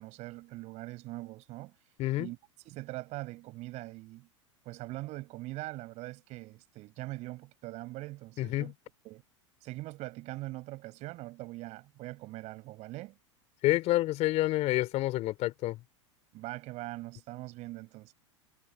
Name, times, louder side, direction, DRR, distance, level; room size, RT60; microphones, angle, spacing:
voice 1, 0.0-1.7 2.2-2.4 2.6-4.3 4.7-8.7 9.0-9.2 9.6-13.2 16.3-18.1, right 19 dB, 45° right, 7.4 m, -42 dB
voice 2, 8.4-8.7 13.6-15.8, left 17 dB, 45° left, 3.5 m, -28 dB
figure-of-eight pair, 90°, 16 cm